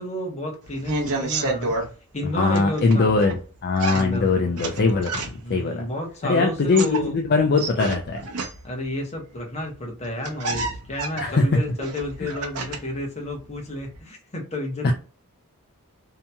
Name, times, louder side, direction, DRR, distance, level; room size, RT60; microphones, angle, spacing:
voice 1, 0.0-1.8 2.1-3.4 3.9-4.5 5.4-7.2 8.6-14.9, left 1 dB, 30° left, 0 dB, 0.9 m, -31 dB
sound 1, 0.6-1.9 2.5-3.4 3.8-5.6 6.5-8.8 9.7-9.8 10.0-13.0 13.3-14.0, right 3 dB, 80° right, 0.8 m, -30 dB
voice 2, 2.3-5.2 5.5-5.9 6.2-8.2 11.2-11.4 12.2-12.3 14.8-14.9, left 4 dB, 45° left, 4 dB, 0.4 m, -21 dB
2.8 x 2.8 x 2.3 m, 0.38 s
head